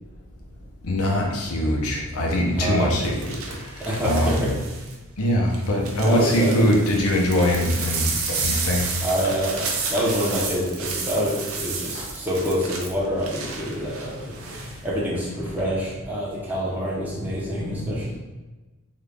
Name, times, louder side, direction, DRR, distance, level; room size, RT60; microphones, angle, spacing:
voice 1, 0.8-4.4 5.2-8.9 11.9-12.1 15.5-15.6 17.2-18.1, equal, 80° left, -1 dB, 0.7 m, -23 dB
sound 1, 1.4-1.7 3.0-5.0 5.5-14.8 15.1-15.6, right 4 dB, 75° right, 0.6 m, -32 dB
voice 2, 2.6-3.1 3.9-4.5 6.0-6.6 9.0-18.2, equal, 10° right, -7 dB, 0.7 m, -26 dB
3.8 x 2.4 x 3.3 m, 1.2 s
head